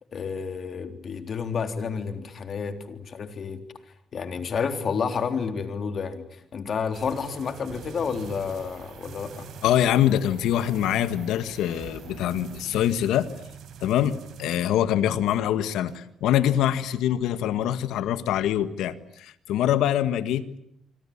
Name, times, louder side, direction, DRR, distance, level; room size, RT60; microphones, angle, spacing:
voice 1, 0.1-3.6 4.1-9.5, left 6 dB, 50° left, 7 dB, 3.7 m, -30 dB
sound 1, 6.9-15.2 15.5-16.0, right 7 dB, 75° right, 6.6 m, -44 dB
voice 2, 9.6-13.3 13.8-20.6, left 11 dB, 85° left, 12 dB, 1.6 m, -24 dB
26.0 x 25.5 x 8.7 m, 0.73 s
cardioid pair, 90°, 0 cm